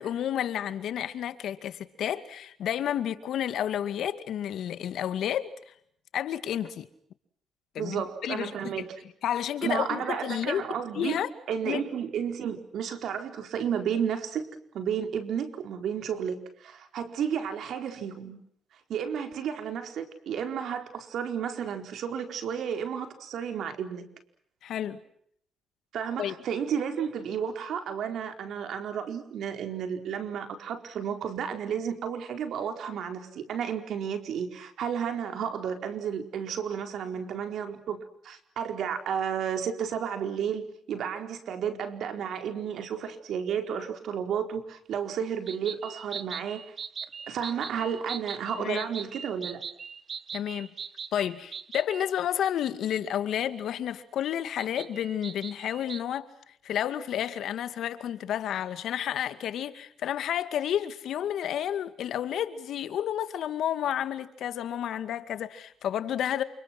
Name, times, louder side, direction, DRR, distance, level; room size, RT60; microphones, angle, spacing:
voice 1, 0.0-5.7 6.1-6.9 7.7-8.5 9.2-10.6 10.9-11.3 11.6-11.8 24.6-25.0 26.2-26.4 48.6-48.8 50.3-50.7 51.1-56.3 56.6-66.4, left 10 dB, 75° left, 2.2 m, -31 dB
voice 2, 7.8-8.9 9.6-11.2 11.5-14.5 14.7-18.4 18.9-24.0 25.9-38.0 38.2-46.6 47.3-49.6, right 8 dB, 70° right, 4.6 m, -32 dB
sound 1, 45.5-52.1 54.6-56.0, right 6 dB, 50° right, 1.6 m, -40 dB
29.0 x 29.0 x 6.1 m
cardioid pair, 90°, 0 cm